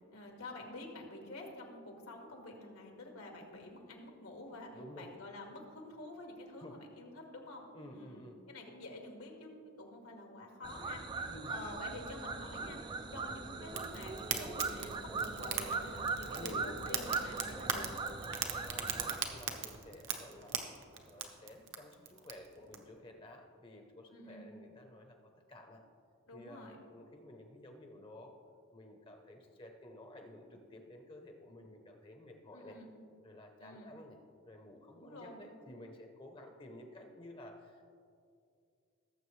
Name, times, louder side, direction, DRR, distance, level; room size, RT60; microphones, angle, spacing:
voice 1, 0.1-4.7 5.0-7.7 7.9-9.5 9.8-17.9 24.1-24.5 26.3-26.8 32.5-32.9 33.6-33.9 34.9-35.5, left 1 dB, 80° left, 1 dB, 1.9 m, -48 dB
voice 2, 4.7-5.1 6.6-6.8 7.7-8.4 11.3-11.5 16.3-16.7 18.6-20.6 21.0-25.8 26.3-28.4 28.7-32.8 33.2-34.2 34.4-37.8, left 1 dB, 25° left, 4 dB, 0.8 m, -53 dB
sound 1, 10.6-19.2, right 4 dB, 20° right, 0.3 m, -40 dB
Fire, 13.7-22.8, right 7 dB, 55° right, 0.9 m, -41 dB
18.0 x 7.4 x 3.2 m, 2.3 s
head